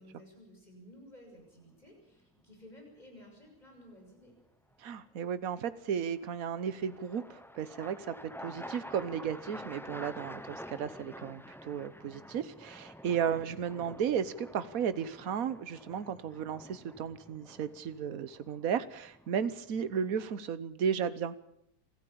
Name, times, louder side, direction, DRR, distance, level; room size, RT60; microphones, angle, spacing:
voice 1, 0.0-4.4, equal, 25° left, 1 dB, 6.8 m, -54 dB
sound 1, 1.4-1.9 5.7-20.3, equal, ahead, 0.7 m, -49 dB
voice 2, 4.8-21.3, right 8 dB, 65° right, 14 dB, 1.5 m, -34 dB
25.5 x 14.0 x 8.6 m, 0.77 s
omnidirectional pair, 1.6 m